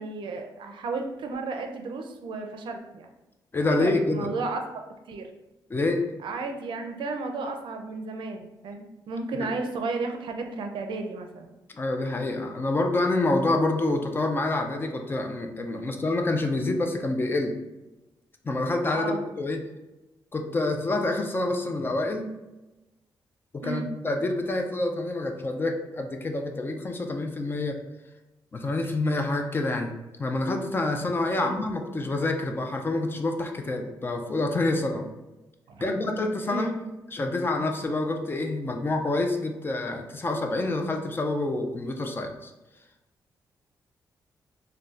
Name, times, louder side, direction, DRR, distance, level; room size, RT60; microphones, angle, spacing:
voice 1, 0.0-3.1 3.7-4.6 5.1-5.3 6.2-11.5 18.9-19.2 23.6-23.9 31.3-31.6 35.7-35.9 36.5-36.9, right 3 dB, 75° right, 4 dB, 0.4 m, -33 dB
voice 2, 3.5-4.3 5.7-6.1 9.4-9.5 11.8-17.6 18.4-19.6 20.3-22.3 23.5-27.8 28.5-29.9 30.2-35.1 35.8-36.7 37.1-42.5, left 2 dB, 25° left, 4 dB, 0.4 m, -27 dB
3.9 x 2.2 x 2.4 m, 1.0 s
cardioid pair, 120°, 8 cm